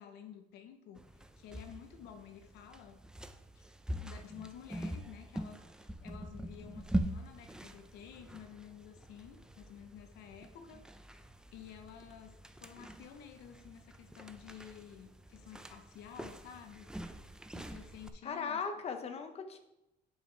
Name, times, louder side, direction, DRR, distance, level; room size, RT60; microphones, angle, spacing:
voice 1, 0.0-3.0 3.5-3.7 4.0-10.9 11.5-17.2 17.5-18.6, left 9 dB, 85° left, 8 dB, 0.8 m, -52 dB
sound 1, 1.0-18.1, right 1 dB, 5° right, 0.4 m, -43 dB
voice 2, 18.2-19.6, left 5 dB, 40° left, 6 dB, 0.9 m, -38 dB
9.1 x 5.5 x 3.3 m, 0.89 s
cardioid pair, 110°, 17 cm